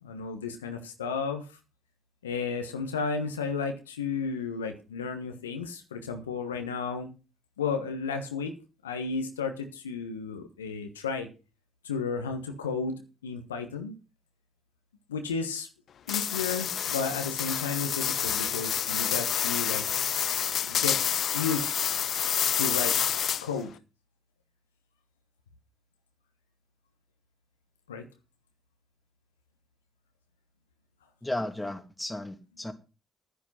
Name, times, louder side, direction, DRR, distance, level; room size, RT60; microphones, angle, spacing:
voice 1, 0.0-1.4 2.2-7.1 7.6-8.5 8.8-11.3 11.8-13.9 15.1-15.7 16.1-19.8 20.6-21.7 22.5-23.0 23.4-23.7 27.9-28.1, left 5 dB, 90° left, 6 dB, 1.3 m, -33 dB
sound 1, 16.1-23.6, left 9 dB, 55° left, 0.6 m, -28 dB
voice 2, 31.2-32.7, left 1 dB, 10° left, 6 dB, 2.6 m, -34 dB
10.5 x 10.0 x 5.8 m, 0.31 s
hypercardioid pair, 45°, 0 cm